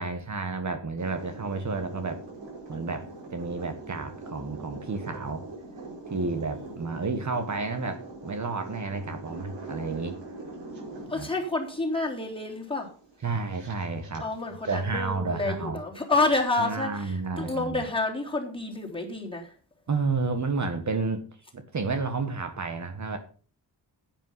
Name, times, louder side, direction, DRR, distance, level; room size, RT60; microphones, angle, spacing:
voice 1, 0.0-2.2 2.7-5.5 6.1-10.2 11.2-11.3 13.2-14.3 14.7-15.8 16.6-17.8 19.9-21.2 21.5-23.2, right 4 dB, 45° right, 7 dB, 1.6 m, -31 dB
sound 1, 1.0-14.8, right 3 dB, 90° right, 5.5 m, -43 dB
voice 2, 6.2-6.7 11.1-12.9 14.2-19.5, left 2 dB, 10° left, 0 dB, 3.6 m, -29 dB
10.5 x 9.1 x 5.7 m, 0.39 s
wide cardioid pair, 110°, 41 cm